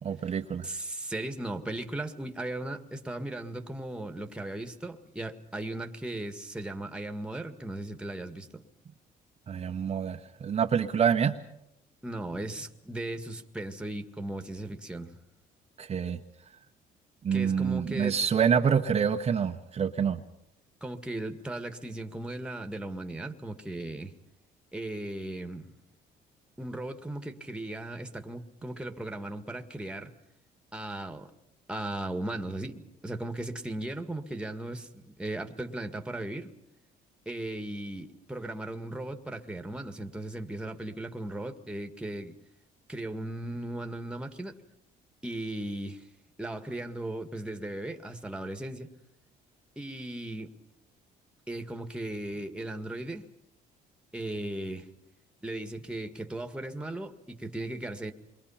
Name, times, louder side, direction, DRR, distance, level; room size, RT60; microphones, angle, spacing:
voice 1, 0.0-0.7 9.5-11.4 15.8-16.2 17.2-20.2, right 7 dB, 35° right, 1.1 m, -27 dB
voice 2, 0.6-8.6 12.0-15.2 17.3-18.2 20.8-24.1 24.7-25.7 26.6-30.1 30.7-31.3 31.7-36.5 37.3-42.3 42.9-44.6 45.2-46.1 46.4-48.9 49.8-50.5 51.5-53.3 54.1-54.9 55.4-58.1, right 1 dB, 5° right, 1.9 m, -37 dB
28.0 x 23.0 x 5.8 m
cardioid pair, 110°, 17 cm